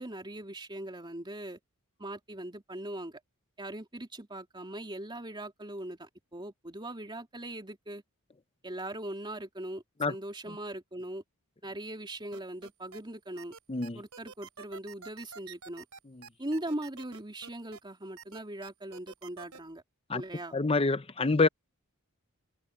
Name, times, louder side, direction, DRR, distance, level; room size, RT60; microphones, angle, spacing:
voice 1, 0.0-1.6 2.0-3.2 3.6-8.0 8.6-11.2 11.6-13.5 13.9-15.8 16.4-19.8 20.1-20.6, right 1 dB, 20° right, 2.9 m, -40 dB
sound 1, 12.3-13.0 13.4-17.8 18.2-19.6, right 6 dB, 75° right, 3.8 m, -48 dB
voice 2, 20.5-21.5, left 3 dB, 25° left, 0.7 m, -26 dB
head